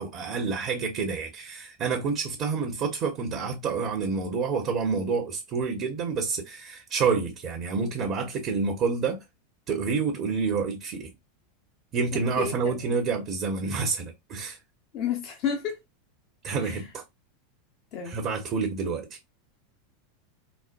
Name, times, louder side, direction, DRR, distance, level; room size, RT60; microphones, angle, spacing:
voice 1, 0.0-9.2 9.7-11.1 11.9-14.6 16.4-17.0 18.0-19.1, right 5 dB, 45° right, 0.9 m, -28 dB
voice 2, 12.1-13.0 14.9-15.8 16.6-16.8 17.9-18.2, left 7 dB, 50° left, 0.9 m, -31 dB
4.3 x 2.1 x 2.5 m
hypercardioid pair, 90°, 0 cm